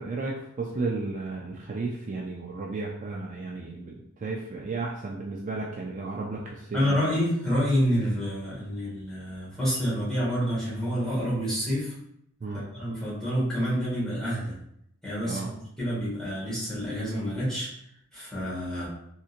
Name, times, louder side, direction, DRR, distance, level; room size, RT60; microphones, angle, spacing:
voice 1, 0.0-7.0 12.4-12.6 15.2-15.5, right 3 dB, 35° right, -2 dB, 0.4 m, -33 dB
voice 2, 6.7-11.9 12.7-14.6 15.0-17.7 18.1-18.9, equal, 5° left, -9 dB, 1.4 m, -28 dB
3.7 x 2.8 x 2.5 m, 0.74 s
head